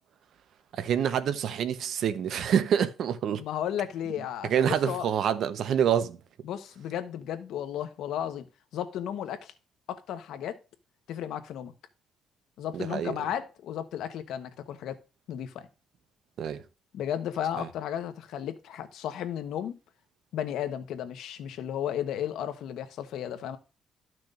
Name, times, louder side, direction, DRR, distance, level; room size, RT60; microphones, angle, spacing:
voice 1, 0.8-3.4 4.4-6.2 12.7-13.1 16.4-16.6 17.6-17.7, right 8 dB, 60° right, 0.9 m, -27 dB
voice 2, 3.4-5.1 6.4-8.5 8.7-9.5 9.9-10.6 11.1-11.7 12.6-15.0 15.3-15.7 16.9-19.8 20.3-23.6, left 10 dB, 80° left, 1.1 m, -34 dB
13.5 x 6.1 x 2.5 m
cardioid pair, 135°, 0 cm